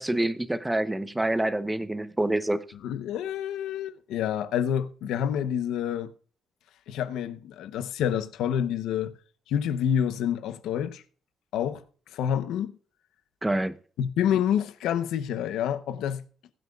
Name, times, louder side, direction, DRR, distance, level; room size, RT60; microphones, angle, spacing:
voice 1, 0.0-2.6 13.4-13.7, right 1 dB, 10° right, 0.8 m, -26 dB
voice 2, 2.7-6.1 6.9-9.1 9.5-11.0 11.5-11.8 12.1-12.7 14.0-16.2, left 9 dB, 85° left, 0.8 m, -28 dB
21.0 x 7.7 x 2.4 m
cardioid pair, 90°, 0 cm